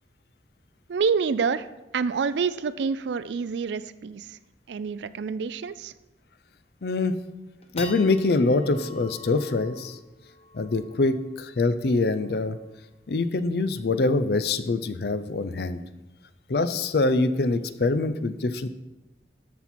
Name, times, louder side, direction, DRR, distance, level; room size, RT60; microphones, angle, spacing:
voice 1, 0.9-1.7 1.9-4.4 4.7-5.9, right 5 dB, 80° right, 15 dB, 0.4 m, -27 dB
sound 1, 4.2-4.3 4.6-4.7 5.1-5.4 5.8-5.9 6.5-6.8 7.3-13.9, left 3 dB, 35° left, 0.8 m, -46 dB
voice 2, 6.8-7.2 7.7-10.0 10.5-12.6 13.1-15.8 16.5-18.7, left 3 dB, 60° left, 12 dB, 0.5 m, -24 dB
12.5 x 4.3 x 4.3 m, 1.0 s
head